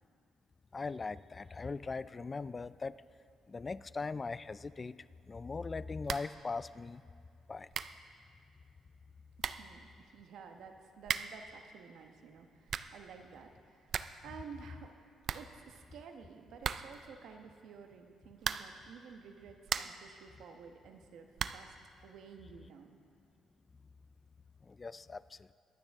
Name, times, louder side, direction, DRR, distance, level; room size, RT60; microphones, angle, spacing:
voice 1, 0.7-3.0 3.5-5.0 5.3-7.0 7.5-7.7 24.6-25.5, left 4 dB, 30° left, 17 dB, 0.3 m, -40 dB
sound 1, 6.0-6.4 6.7-6.8 7.4-7.5 7.7-8.0 9.0-9.1 9.4-9.7 11.0-11.5 12.4-13.0 13.4-13.5 13.7-14.3 14.5-14.6 14.9-15.0 15.2-16.0 16.6-17.1 18.4-18.9 19.3-20.1 21.3-21.7, right 7 dB, 60° right, 0.4 m, -38 dB
voice 2, 9.4-21.7 22.0-23.0, right 6 dB, 75° right, 5 dB, 1.1 m, -52 dB
22.5 x 9.0 x 3.6 m, 2.4 s
cardioid pair, 90°, 0 cm